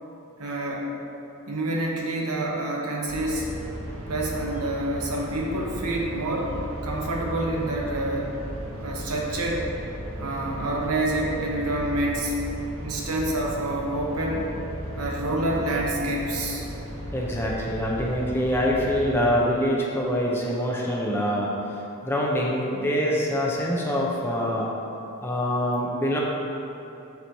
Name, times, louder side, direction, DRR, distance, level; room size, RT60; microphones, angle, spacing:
voice 1, 0.4-0.9 1.5-3.5 4.1-6.5 6.8-8.3 8.8-9.7 10.2-12.3 12.8-14.5 15.0-16.6, right 1 dB, 85° right, -2 dB, 1.0 m, -27 dB
sound 1, 3.1-19.4, equal, 65° right, 0.9 m, -36 dB
voice 2, 17.1-21.5 22.0-24.7 25.2-26.2, equal, 10° left, -3 dB, 0.6 m, -25 dB
7.1 x 3.1 x 5.3 m, 3.0 s
head